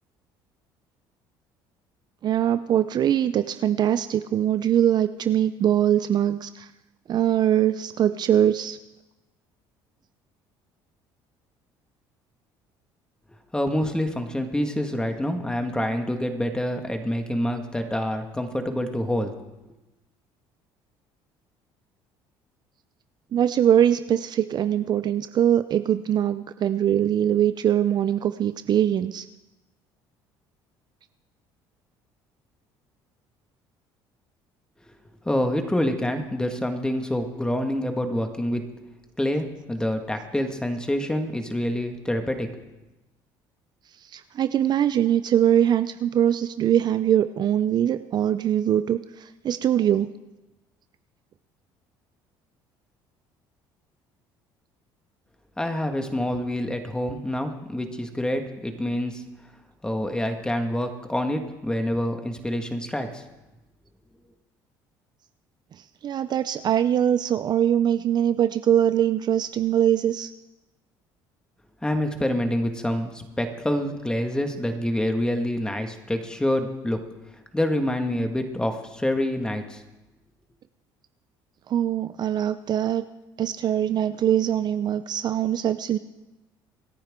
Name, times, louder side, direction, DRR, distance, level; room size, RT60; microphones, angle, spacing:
voice 1, 2.2-6.7 7.1-8.8 23.3-29.3 44.1-50.1 66.0-70.3 81.7-83.1 83.4-86.0, right 10 dB, 50° right, 12 dB, 0.5 m, -22 dB
voice 2, 13.5-19.4 35.3-38.6 39.2-42.5 55.6-59.2 59.8-63.2 71.8-77.0 77.5-79.8, left 1 dB, 10° left, 5 dB, 1.9 m, -27 dB
26.5 x 10.0 x 3.7 m, 1.0 s
supercardioid pair, 95°, 10 cm